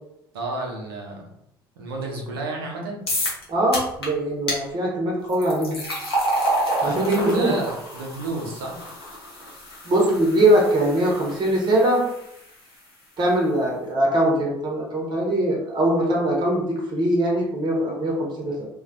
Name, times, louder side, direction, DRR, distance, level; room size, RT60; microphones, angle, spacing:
voice 1, 0.3-1.2 1.8-3.0 6.8-8.8, right 2 dB, 70° right, 0 dB, 0.6 m, -30 dB
sound 1, 3.1-3.4 3.7-4.1 4.5-4.6 5.3-12.4, right 1 dB, 80° left, 0.6 m, -29 dB
voice 2, 3.5-5.8 6.8-7.5 9.8-12.0 13.2-18.7, right 1 dB, 35° right, -1 dB, 0.7 m, -21 dB
2.3 x 2.1 x 2.5 m, 0.79 s
figure-of-eight pair, 60°, 13 cm